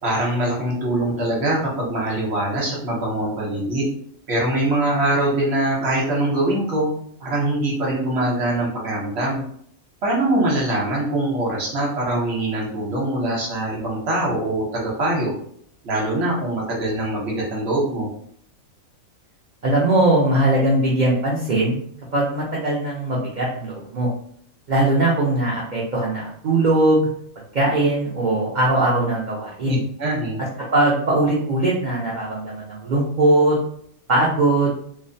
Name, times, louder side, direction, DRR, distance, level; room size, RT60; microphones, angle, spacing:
voice 1, 0.0-3.9 4.3-6.9 7.2-9.4 10.0-15.3 15.8-18.1 29.7-30.4, right 1 dB, 55° right, -3 dB, 0.9 m, -23 dB
voice 2, 19.6-21.8 22.1-24.1 24.7-27.1 27.5-29.8 30.7-33.6 34.1-34.7, right 2 dB, 85° right, -4 dB, 0.4 m, -20 dB
2.4 x 2.0 x 2.5 m, 0.64 s
omnidirectional pair, 1.4 m